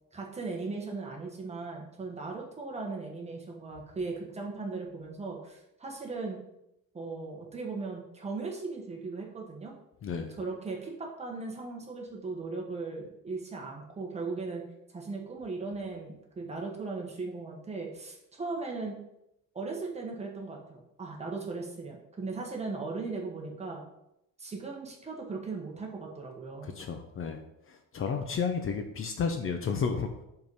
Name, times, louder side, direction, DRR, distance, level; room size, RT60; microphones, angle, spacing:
voice 1, 0.1-6.4 6.9-9.7 10.4-14.6 14.9-19.0 19.5-23.8 24.4-26.7, right 3 dB, 20° right, 0 dB, 1.3 m, -38 dB
voice 2, 10.0-10.4 26.6-27.4 27.7-30.2, left 5 dB, 40° left, 6 dB, 0.6 m, -32 dB
5.3 x 4.7 x 5.5 m, 0.83 s
cardioid pair, 160°, 33 cm